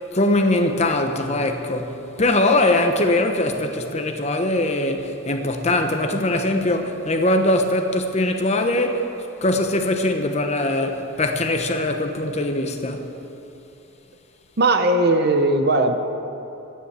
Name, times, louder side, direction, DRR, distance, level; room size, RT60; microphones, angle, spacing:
voice 1, 0.1-9.1 9.4-13.1, left 1 dB, 30° left, 0.9 m, -21 dB
voice 2, 14.6-16.0, right 2 dB, 50° right, 0.8 m, -18 dB
12.5 x 9.8 x 8.3 m
head